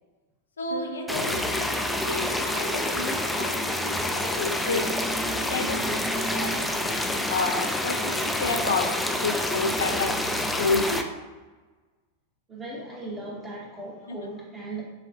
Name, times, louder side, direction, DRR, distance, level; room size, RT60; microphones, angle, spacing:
voice 1, 0.6-4.0 4.4-4.8 5.2-6.6 7.3-8.9 9.2-10.1 10.6-11.0 14.1-14.3, left 4 dB, 70° left, 4 dB, 0.5 m, -30 dB
sound 1, 0.7-8.8, left 2 dB, 85° right, 0.4 m, -41 dB
sound 2, 1.1-11.0, left 1 dB, 5° left, 0.4 m, -28 dB
sound 3, 4.4-10.8, right 4 dB, 40° right, 0.6 m, -42 dB
voice 2, 12.5-14.8, right 2 dB, 25° right, -6 dB, 1.2 m, -37 dB
6.7 x 2.4 x 2.4 m, 1.3 s
figure-of-eight pair, 90°, 0 cm